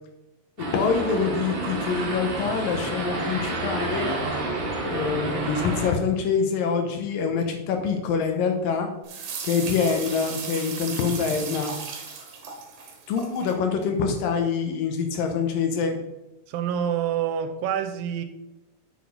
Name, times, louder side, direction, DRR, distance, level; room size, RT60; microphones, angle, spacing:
voice 1, 0.6-4.1 4.8-8.9 9.4-11.8 13.1-16.0, left 5 dB, 90° left, 5 dB, 2.8 m, -25 dB
sound 1, 0.6-5.9, right 2 dB, 45° right, 2.3 m, -29 dB
sound 2, 9.0-13.5, right 5 dB, 65° right, 2.6 m, -36 dB
voice 2, 16.5-18.2, right 9 dB, 85° right, 10 dB, 2.5 m, -27 dB
7.3 x 6.2 x 5.5 m, 0.94 s
omnidirectional pair, 3.9 m